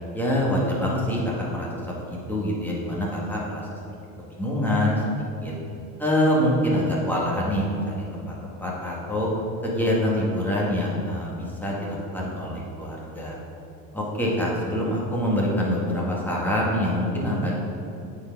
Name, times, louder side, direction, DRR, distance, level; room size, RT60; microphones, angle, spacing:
voice 1, 0.1-3.8 4.4-5.0 5.4-5.5 6.0-9.3 9.6-13.4 13.9-17.5, equal, 5° left, -5 dB, 2.0 m, -25 dB
8.5 x 5.0 x 6.1 m, 2.8 s
supercardioid pair, 125°, 42 cm